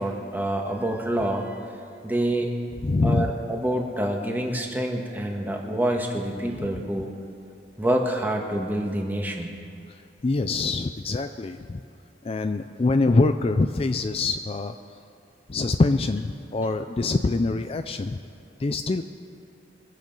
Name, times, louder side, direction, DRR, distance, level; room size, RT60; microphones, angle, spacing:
voice 1, 0.0-1.6 2.0-2.5 3.0-7.1 7.8-9.5, right 1 dB, 10° right, 1 dB, 1.4 m, -27 dB
voice 2, 2.8-3.3 6.5-6.7 10.2-11.8 12.2-14.8 15.5-18.2 18.6-19.0, left 3 dB, 30° left, 8 dB, 0.4 m, -24 dB
23.5 x 7.8 x 5.3 m, 2.5 s
head